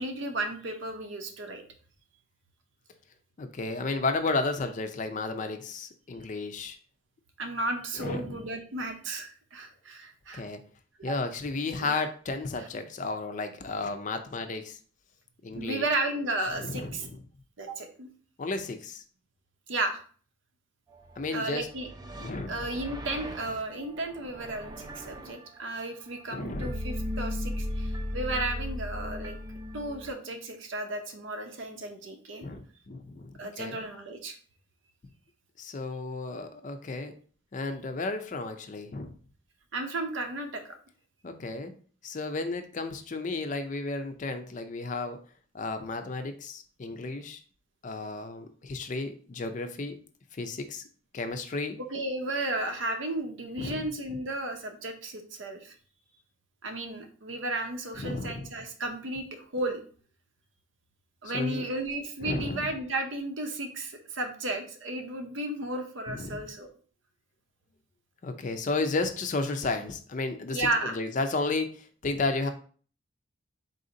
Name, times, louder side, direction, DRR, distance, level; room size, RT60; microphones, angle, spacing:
voice 1, 0.0-1.6 7.4-10.4 11.1-11.2 11.8-12.0 15.5-17.1 17.6-18.1 19.7-20.0 21.3-21.9 22.5-29.4 29.7-32.5 33.4-34.3 39.7-40.6 51.8-55.7 56.6-59.8 61.2-66.7 70.5-71.0, right 2 dB, 75° right, 5 dB, 0.7 m, -33 dB
voice 2, 3.4-6.8 8.0-8.5 10.3-10.6 11.0-14.8 15.4-15.8 16.5-17.2 18.4-19.0 21.2-21.7 22.1-22.6 26.3-26.7 32.4-33.8 35.6-37.1 37.5-39.2 41.2-41.7 42.0-45.2 45.5-47.4 47.8-50.0 50.3-50.8 51.1-51.8 53.6-53.8 54.1-54.2 58.0-58.5 61.3-61.6 62.2-62.7 66.1-66.5 68.2-72.5, left 3 dB, 40° left, 8 dB, 0.4 m, -33 dB
sound 1, 21.1-21.3 21.6-25.3 26.5-30.1, left 1 dB, 20° right, 0.3 m, -36 dB
4.1 x 2.6 x 3.8 m, 0.43 s
head